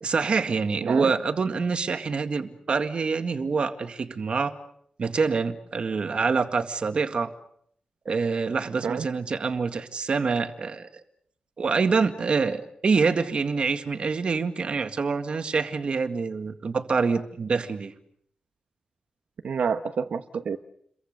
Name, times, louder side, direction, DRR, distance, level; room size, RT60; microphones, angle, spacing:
voice 1, 0.0-4.5 5.0-7.3 8.1-10.9 11.6-17.9, right 4 dB, 50° right, 8 dB, 1.9 m, -26 dB
voice 2, 0.8-1.1 8.8-9.1 19.4-20.6, right 6 dB, 80° right, 8 dB, 1.1 m, -28 dB
29.5 x 23.0 x 6.7 m, 0.68 s
wide cardioid pair, 175°, 2 cm